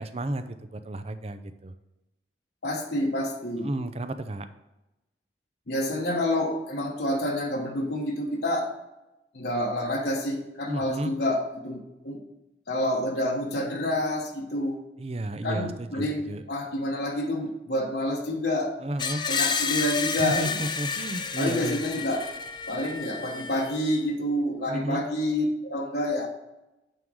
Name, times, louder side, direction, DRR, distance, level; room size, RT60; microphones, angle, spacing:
voice 1, 0.0-1.7 3.6-4.5 10.7-11.1 15.0-16.4 18.8-19.3 20.2-21.8 24.7-25.0, right 1 dB, 35° right, 10 dB, 0.5 m, -32 dB
voice 2, 2.6-3.7 5.7-8.7 9.3-12.2 12.7-14.8 15.4-18.7 19.3-20.5 21.4-22.3 22.7-26.3, left 1 dB, 60° left, 1 dB, 1.1 m, -28 dB
Screech, 19.0-24.0, left 5 dB, 25° left, 0.5 m, -31 dB
9.1 x 3.7 x 6.2 m, 0.96 s
head